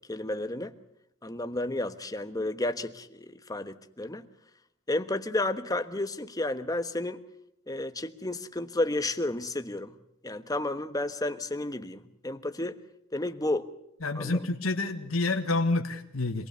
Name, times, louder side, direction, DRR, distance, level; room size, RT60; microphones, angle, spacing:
voice 1, 0.1-0.7 1.2-4.3 4.9-7.2 7.7-10.0 10.2-12.8 13.1-13.7 14.1-14.5, left 2 dB, 20° left, 8 dB, 1.3 m, -32 dB
voice 2, 14.0-16.5, left 2 dB, 90° left, 5 dB, 1.7 m, -28 dB
26.0 x 19.5 x 6.9 m, 0.75 s
head